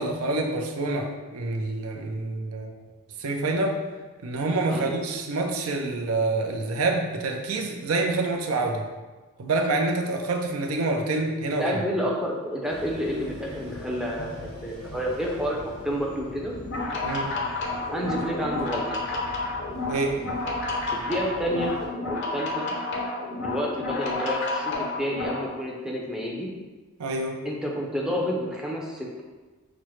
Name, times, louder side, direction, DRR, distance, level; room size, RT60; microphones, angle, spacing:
voice 1, 0.0-2.7 3.2-3.8 4.2-8.9 9.4-11.8 17.0-17.3 19.9-20.2 27.0-27.4, right 2 dB, 75° right, 2 dB, 0.5 m, -27 dB
voice 2, 11.6-16.5 17.9-18.8 20.9-21.7 22.0-22.7 23.4-26.5 27.4-29.2, equal, 5° right, -3 dB, 0.5 m, -29 dB
sound 1, 12.7-21.9, left 1 dB, 90° left, 1.1 m, -43 dB
sound 2, 16.6-25.5, left 2 dB, 55° left, 0.6 m, -30 dB
6.0 x 2.1 x 3.0 m, 1.2 s
head